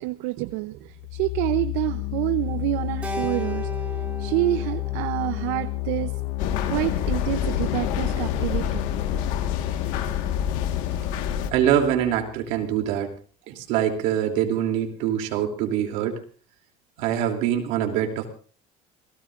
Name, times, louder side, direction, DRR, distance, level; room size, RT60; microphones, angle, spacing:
voice 1, 0.0-3.7 4.2-6.1 6.7-8.8, right 18 dB, 85° right, 11 dB, 0.7 m, -27 dB
sound 1, 0.9-12.6, left 23 dB, 55° left, 0.8 m, -31 dB
Keyboard (musical), 3.0-7.4, right 3 dB, 10° right, 3.1 m, -37 dB
sound 2, 6.4-11.5, left 8 dB, 75° left, 1.6 m, -28 dB
voice 2, 11.5-13.1 13.5-16.2 17.0-18.3, right 10 dB, 70° right, 4 dB, 3.0 m, -24 dB
27.5 x 17.5 x 2.5 m, 0.40 s
cardioid pair, 170°, 13 cm